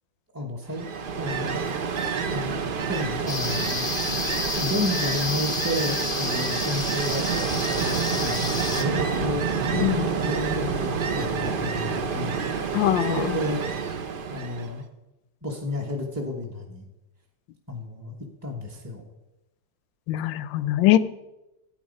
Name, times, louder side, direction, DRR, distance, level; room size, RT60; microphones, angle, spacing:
voice 1, 0.3-0.9 1.2-1.6 2.3-3.8 4.5-7.4 7.8-9.4 9.9-12.3 13.1-13.6 14.3-14.8 15.4-16.8 17.7-18.1 18.4-19.0, left 1 dB, 10° right, -2 dB, 0.8 m, -31 dB
Ocean, 0.7-14.8, right 5 dB, 80° right, 0.4 m, -28 dB
sound 1, 3.3-8.8, left 3 dB, 25° left, 0.7 m, -30 dB
voice 2, 9.7-10.1 12.7-13.4 20.1-21.0, left 14 dB, 80° left, 15 dB, 1.3 m, -22 dB
12.0 x 8.7 x 5.3 m, 0.96 s
omnidirectional pair, 2.0 m